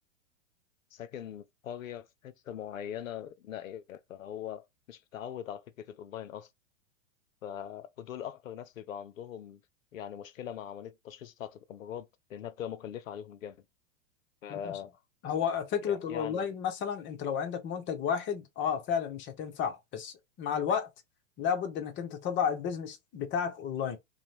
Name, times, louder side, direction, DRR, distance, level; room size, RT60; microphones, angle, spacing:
voice 1, 0.9-6.5 7.4-9.6 9.9-13.6 14.4-15.0 15.9-16.5, left 9 dB, 90° left, 0.6 m, -41 dB
voice 2, 15.2-20.9 21.4-24.0, left 7 dB, 30° left, 0.8 m, -32 dB
2.5 x 2.2 x 3.1 m
hypercardioid pair, 110°, 39 cm